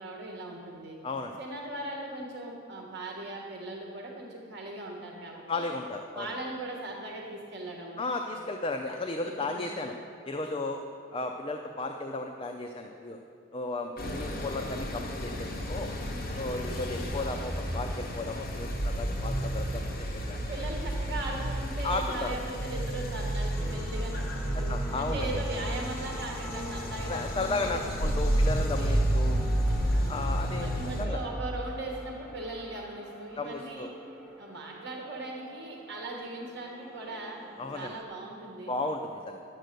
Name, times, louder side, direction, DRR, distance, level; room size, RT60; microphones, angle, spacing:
voice 1, 0.0-1.0 1.4-5.7 6.1-7.9 9.2-9.6 16.6-17.0 20.5-29.0 29.9-30.3 30.6-33.9 34.4-37.4 37.7-38.8, right 2 dB, 55° right, -1 dB, 1.3 m, -39 dB
voice 2, 1.0-1.4 5.5-6.3 8.0-9.9 10.2-10.8 11.1-13.2 13.5-15.9 16.4-20.4 21.8-22.4 24.5-25.3 27.0-29.4 30.1-31.2 33.4-33.9 37.6-37.9 38.7-39.4, left 2 dB, 25° left, 4 dB, 0.4 m, -34 dB
sound 1, 14.0-31.1, right 1 dB, 45° left, 1.3 m, -31 dB
sound 2, 23.6-38.0, left 1 dB, ahead, 0.8 m, -45 dB
10.5 x 7.7 x 6.6 m, 2.6 s
head